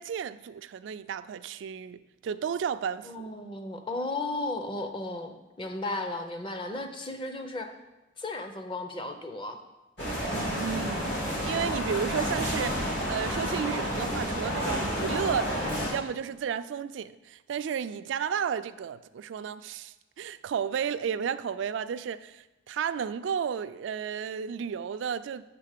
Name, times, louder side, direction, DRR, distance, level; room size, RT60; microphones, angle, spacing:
voice 1, 0.0-3.2 10.5-15.6 15.9-25.4, right 7 dB, 80° right, 0.3 m, -33 dB
voice 2, 3.0-7.7 8.2-9.6, left 2 dB, 25° left, 0.6 m, -35 dB
sound 1, 10.0-15.9, equal, 70° left, 2.3 m, -30 dB
7.5 x 3.6 x 6.5 m
head